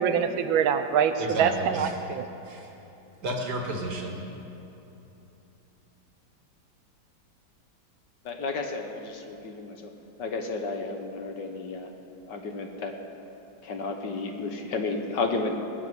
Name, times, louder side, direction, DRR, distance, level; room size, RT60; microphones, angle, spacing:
voice 1, 0.0-2.3, right 7 dB, 85° right, 9 dB, 1.6 m, -24 dB
voice 2, 1.2-2.0 2.5-2.7 3.2-4.2, right 1 dB, 55° right, 2 dB, 2.2 m, -32 dB
voice 3, 8.3-9.9 10.2-11.9 12.3-13.0 13.6-15.6, left 3 dB, 60° left, 4 dB, 1.8 m, -32 dB
20.0 x 7.6 x 9.4 m, 3.0 s
omnidirectional pair, 2.2 m